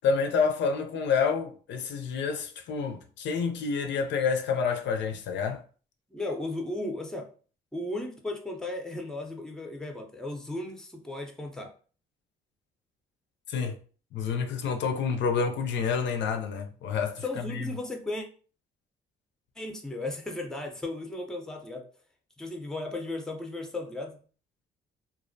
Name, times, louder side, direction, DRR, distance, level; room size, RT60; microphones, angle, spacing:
voice 1, 0.0-5.6 13.5-13.8 14.1-17.7, left 5 dB, 65° left, 0.4 m, -28 dB
voice 2, 6.1-7.3 7.7-11.7 17.2-18.3 19.6-21.8 22.4-24.2, left 2 dB, 5° left, 0.5 m, -35 dB
2.3 x 2.1 x 2.5 m
cardioid pair, 90°, 20 cm